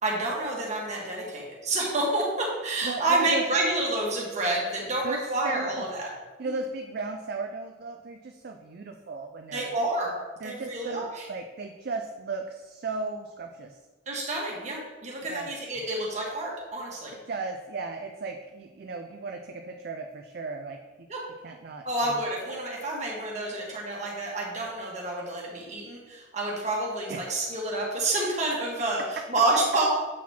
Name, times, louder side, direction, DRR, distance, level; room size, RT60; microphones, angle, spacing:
voice 1, 0.0-6.1 6.4-6.5 9.5-10.1 10.4-11.3 14.0-17.1 21.1-21.2 21.8-29.9, right 2 dB, 35° right, -3 dB, 1.6 m, -29 dB
voice 2, 2.8-3.4 5.0-5.2 5.5-5.8 6.4-9.7 10.4-13.7 15.3-15.5 17.3-20.8 21.4-22.2 27.1-27.2, right 3 dB, 50° right, 4 dB, 0.4 m, -35 dB
7.6 x 4.1 x 4.3 m, 1.2 s
head